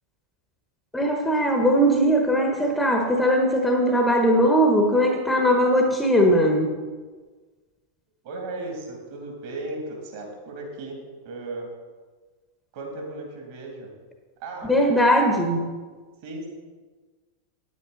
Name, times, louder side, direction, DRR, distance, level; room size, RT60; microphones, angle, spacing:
voice 1, 0.9-6.7 14.6-15.7, equal, 5° left, 2 dB, 1.2 m, -20 dB
voice 2, 8.2-11.0 11.2-11.7 12.7-13.9 14.4-14.7 15.2-15.4 16.2-16.5, right 2 dB, 50° right, 0 dB, 2.8 m, -35 dB
9.5 x 9.3 x 4.0 m, 1.4 s
figure-of-eight pair, 90°, 0 cm